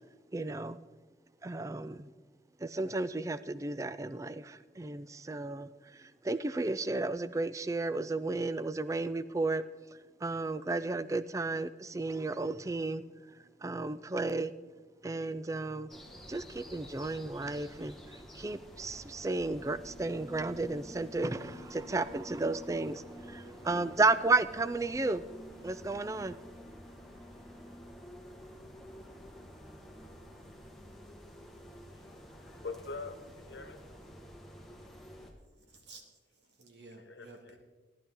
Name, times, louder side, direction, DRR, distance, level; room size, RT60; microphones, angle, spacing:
voice 1, 0.3-0.8 1.4-2.1 2.6-9.6 9.9-14.5 15.0-15.9 16.3-25.2 25.6-26.4, right 3 dB, 15° right, 0.3 m, -33 dB
sound 1, 15.9-35.3, equal, ahead, 1.3 m, -50 dB
voice 2, 31.7-33.8 37.1-37.6, left 3 dB, 70° left, 1.1 m, -45 dB
voice 3, 35.5-37.6, right 3 dB, 70° right, 2.0 m, -54 dB
14.5 x 10.5 x 3.8 m
head